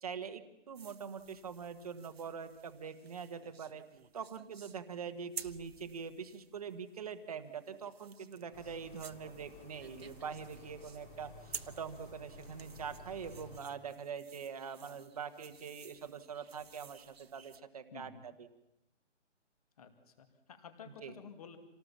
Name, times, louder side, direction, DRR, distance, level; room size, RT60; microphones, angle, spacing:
voice 1, 0.0-3.8 4.1-18.5 21.0-21.1, right 6 dB, 30° right, 9 dB, 1.4 m, -44 dB
sound 1, 0.7-17.6, right 6 dB, 55° right, 1.2 m, -53 dB
sound 2, 8.5-13.6, left 2 dB, 5° left, 1.3 m, -54 dB
voice 2, 17.9-18.3 19.8-19.9 20.2-21.6, left 6 dB, 30° left, 8 dB, 2.4 m, -51 dB
27.5 x 18.5 x 7.4 m, 0.91 s
hypercardioid pair, 170°, 37 cm